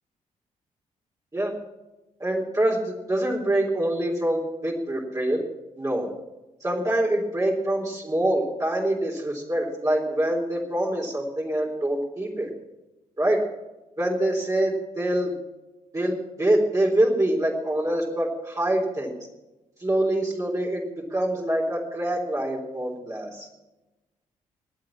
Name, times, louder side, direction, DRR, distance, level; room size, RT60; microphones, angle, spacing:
voice 1, 2.2-5.4 5.8-6.1 6.6-12.5 13.2-13.4 14.0-15.3 15.9-19.1 19.8-20.8 21.1-23.5, right 1 dB, 20° right, -2 dB, 3.8 m, -25 dB
21.0 x 7.7 x 7.4 m, 1.0 s
hypercardioid pair, 40°, 17 cm